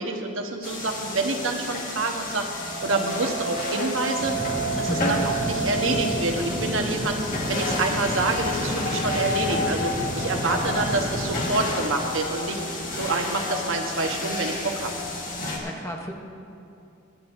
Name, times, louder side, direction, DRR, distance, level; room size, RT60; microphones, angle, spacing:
voice 1, 0.0-2.5 2.8-4.3 4.8-7.2 7.5-14.9, right 2 dB, 80° right, 3 dB, 1.1 m, -27 dB
sound 1, 0.6-15.6, left 1 dB, 45° left, 1.7 m, -30 dB
sound 2, 4.2-11.5, equal, 15° right, 1.9 m, -31 dB
voice 2, 4.9-5.2 10.4-10.9 12.7-12.9 15.6-16.1, equal, 15° left, 2 dB, 0.9 m, -33 dB
24.5 x 9.6 x 2.6 m, 2.6 s
head